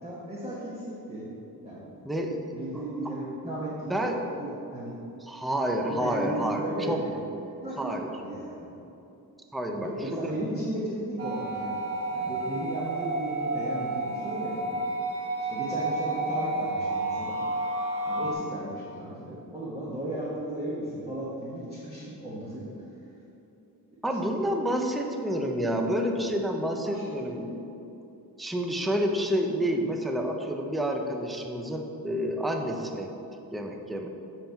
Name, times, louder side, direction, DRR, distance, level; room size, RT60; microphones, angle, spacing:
voice 1, 0.0-1.3 1.6-4.9 5.8-8.8 9.7-11.9 12.1-14.8 15.5-17.4 18.1-22.7 26.8-27.0 27.3-27.5, right 1 dB, 15° right, -7 dB, 1.1 m, -35 dB
voice 2, 2.0-2.5 3.4-3.6 3.9-4.2 5.2-7.0 7.8-8.1 9.5-10.5 24.0-27.6 28.4-33.1 33.5-34.1, equal, ahead, 3 dB, 0.4 m, -29 dB
sound 1, 11.2-18.3, right 2 dB, 35° right, 1.1 m, -31 dB
7.8 x 5.2 x 4.5 m, 2.8 s
cardioid pair, 150°, 39 cm